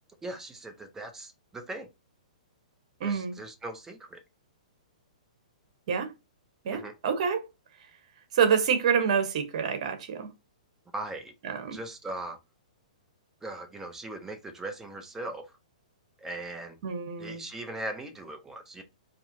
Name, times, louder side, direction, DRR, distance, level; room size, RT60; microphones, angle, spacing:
voice 1, 0.2-1.9 3.0-4.2 6.7-7.0 10.9-11.3 11.7-12.4 13.4-15.5 16.2-16.8 17.2-18.8, right 2 dB, 10° right, 0.7 m, -39 dB
voice 2, 3.0-3.3 5.9-6.1 6.6-7.4 8.3-10.3 11.4-11.8 16.8-17.4, right 7 dB, 55° right, 1.2 m, -27 dB
4.2 x 3.0 x 2.8 m
hypercardioid pair, 135°, 4 cm